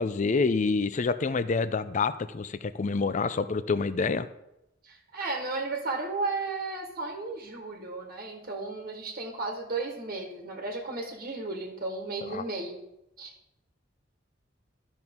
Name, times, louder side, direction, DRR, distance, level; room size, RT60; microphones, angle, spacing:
voice 1, 0.0-4.3 12.3-12.4, left 4 dB, 40° left, 14 dB, 0.5 m, -27 dB
voice 2, 4.8-12.8 13.2-13.3, right 3 dB, 50° right, 1 dB, 1.4 m, -34 dB
13.5 x 6.1 x 3.7 m, 0.88 s
head